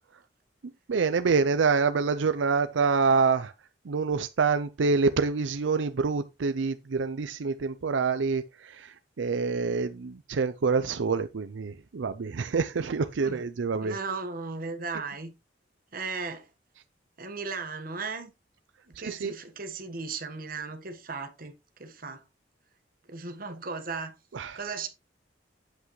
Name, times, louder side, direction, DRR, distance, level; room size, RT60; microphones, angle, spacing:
voice 1, 0.9-3.5 3.8-14.0 19.0-19.3 24.3-24.6, right 4 dB, 85° right, 0.5 m, -26 dB
voice 2, 13.8-15.3 15.9-16.5 17.2-18.3 18.9-21.5 21.8-22.2 23.1-24.2 24.5-24.9, right 4 dB, 50° right, 1.4 m, -36 dB
8.2 x 8.1 x 3.1 m
head